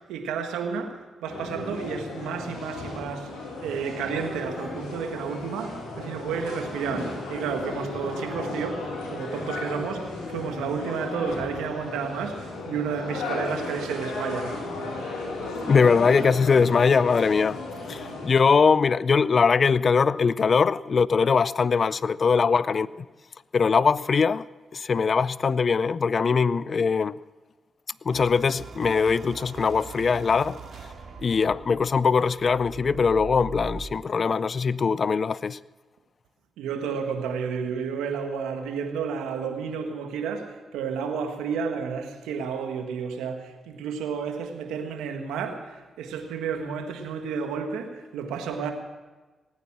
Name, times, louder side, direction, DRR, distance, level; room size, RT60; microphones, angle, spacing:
voice 1, 0.0-3.3 3.6-14.6 36.6-48.7, right 6 dB, 90° right, 1.6 m, -31 dB
sound 1, 1.2-18.3, left 2 dB, 90° left, 4.3 m, -35 dB
voice 2, 15.6-17.6 17.9-23.1 23.5-24.5 24.7-27.2 28.0-30.6 31.2-35.6, left 5 dB, 55° left, 0.4 m, -21 dB
sound 2, 28.1-34.0, right 5 dB, 65° right, 2.4 m, -41 dB
18.5 x 9.4 x 7.4 m
supercardioid pair, 50°, 0 cm